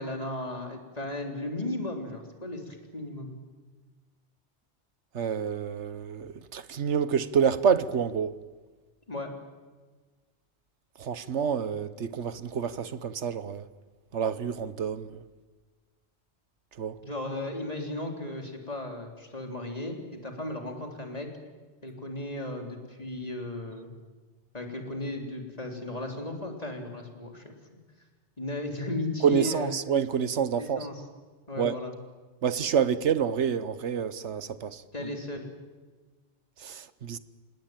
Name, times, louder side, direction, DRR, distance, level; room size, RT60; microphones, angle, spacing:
voice 1, 0.0-3.4 9.1-9.3 17.0-21.3 21.8-23.9 24.5-27.5 28.4-29.7 30.6-31.0 31.5-31.9 34.9-35.4, left 1 dB, 35° left, 3.7 m, -35 dB
voice 2, 5.1-8.4 11.0-13.7 14.1-15.2 16.8-17.0 29.2-30.9 31.6-31.8 32.4-34.8 36.6-37.2, right 7 dB, 85° right, 1.3 m, -28 dB
27.0 x 19.0 x 9.0 m
omnidirectional pair, 1.2 m